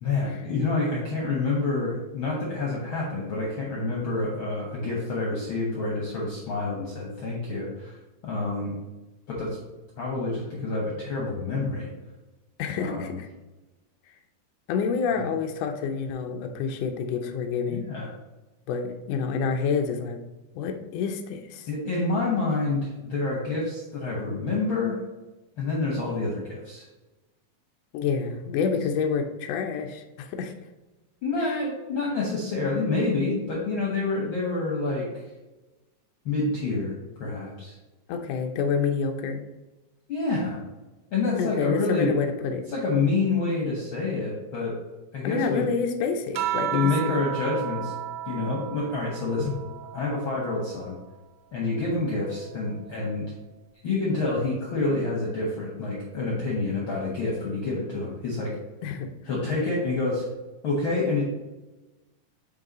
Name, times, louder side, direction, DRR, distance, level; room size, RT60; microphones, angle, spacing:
voice 1, 0.0-8.0 8.2-8.7 9.3-9.6 10.0-11.9 12.8-13.2 15.1-15.2 17.7-18.1 21.7-25.0 25.6-26.9 31.2-35.1 36.2-36.9 37.2-37.8 40.1-40.6 41.1-42.1 42.7-44.7 45.1-45.7 46.7-48.0 48.3-49.5 49.9-51.0 51.5-53.2 53.8-58.5 59.3-60.3 60.6-61.2, left 3 dB, 65° left, -2 dB, 1.2 m, -27 dB
voice 2, 12.6-13.3 14.7-17.8 18.7-20.2 20.5-21.7 27.9-30.5 38.1-39.4 41.4-42.6 45.2-46.9 58.8-59.1, left 5 dB, 85° left, 4 dB, 1.4 m, -28 dB
sound 1, 46.3-51.1 51.6-53.3 54.5-55.0, right 13 dB, 80° right, 2.0 m, -35 dB
8.0 x 3.0 x 4.0 m, 1.1 s
omnidirectional pair, 3.7 m